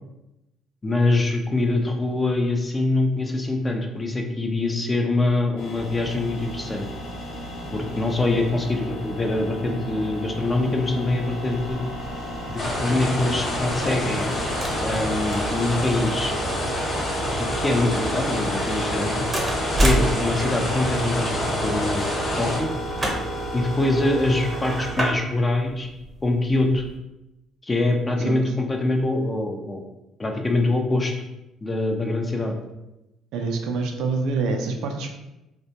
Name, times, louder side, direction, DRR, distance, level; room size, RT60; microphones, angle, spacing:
voice 1, 0.8-6.8 7.7-11.8 12.5-14.3 14.8-16.3 17.3-19.3 19.8-22.0 22.4-22.7 23.5-25.9 26.2-26.8 27.6-29.8 30.2-31.1 31.6-32.5, left 2 dB, 25° left, 3 dB, 0.4 m, -24 dB
sound 1, 5.6-24.9, right 1 dB, 80° left, 0.8 m, -33 dB
sound 2, 11.5-27.0, right 1 dB, 25° right, 0.6 m, -32 dB
sound 3, 12.6-22.6, left 1 dB, 45° left, 0.8 m, -28 dB
voice 2, 33.3-35.1, right 4 dB, 70° right, 3 dB, 0.3 m, -26 dB
2.1 x 2.1 x 2.7 m, 0.94 s
hypercardioid pair, 60°, 0 cm